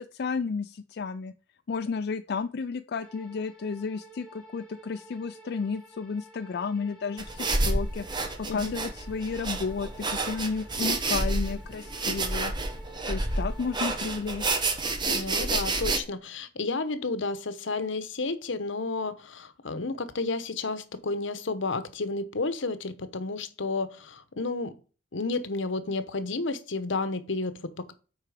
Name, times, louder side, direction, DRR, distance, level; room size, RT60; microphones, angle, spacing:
voice 1, 0.0-1.3 1.7-12.5 13.1-14.6, left 5 dB, 55° left, 8 dB, 0.4 m, -32 dB
sound 1, 2.9-14.2, right 1 dB, 5° left, 2.2 m, -51 dB
sound 2, 7.2-16.0, right 2 dB, 25° right, 1.0 m, -29 dB
voice 2, 15.1-24.7 25.1-27.9, left 3 dB, 80° left, 12 dB, 0.9 m, -31 dB
8.2 x 4.7 x 4.9 m, 0.36 s
head